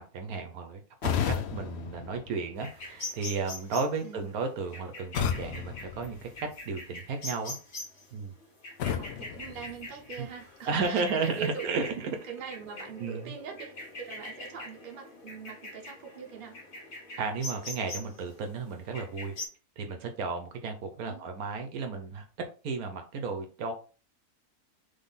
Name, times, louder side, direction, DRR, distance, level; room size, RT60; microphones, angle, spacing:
voice 1, 0.0-6.3 6.7-7.6 8.1-8.4 10.2-10.3 10.7-12.1 13.0-13.3 17.2-19.3 19.8-22.2 22.6-23.7, right 4 dB, 70° right, 6 dB, 1.1 m, -33 dB
sound 1, 1.0-3.0 5.1-6.9 8.8-10.4, left 8 dB, 90° left, 0.5 m, -34 dB
sound 2, 2.6-19.5, left 2 dB, 55° left, 2.1 m, -44 dB
voice 2, 8.9-16.6 21.0-21.3, right 6 dB, 40° right, 2 dB, 0.9 m, -42 dB
3.6 x 3.6 x 4.0 m, 0.36 s
omnidirectional pair, 1.7 m